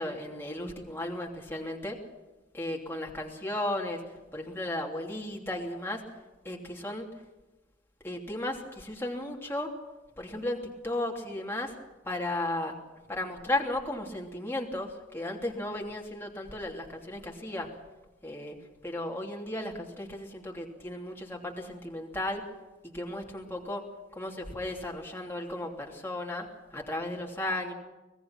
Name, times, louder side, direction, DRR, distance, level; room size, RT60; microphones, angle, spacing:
voice 1, 0.0-2.0 2.5-4.0 4.3-6.0 6.4-7.1 8.0-9.7 10.2-11.7 12.0-12.7 13.1-17.7 18.2-18.5 18.8-22.4 22.8-23.9 24.1-26.4 26.7-27.7, left 1 dB, 15° left, 0 dB, 3.0 m, -35 dB
25.0 x 19.5 x 5.9 m, 1.1 s
head